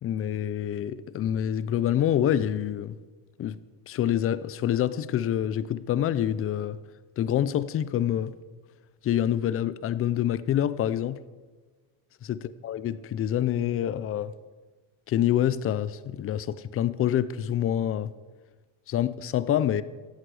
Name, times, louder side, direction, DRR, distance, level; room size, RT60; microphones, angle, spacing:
voice 1, 0.0-3.0 3.4-3.6 3.9-6.8 7.2-8.3 9.0-11.2 12.2-14.3 15.1-18.1 18.9-19.8, left 10 dB, 30° left, 16 dB, 0.6 m, -26 dB
15.0 x 11.5 x 4.9 m, 1.3 s
cardioid pair, 135°, 45 cm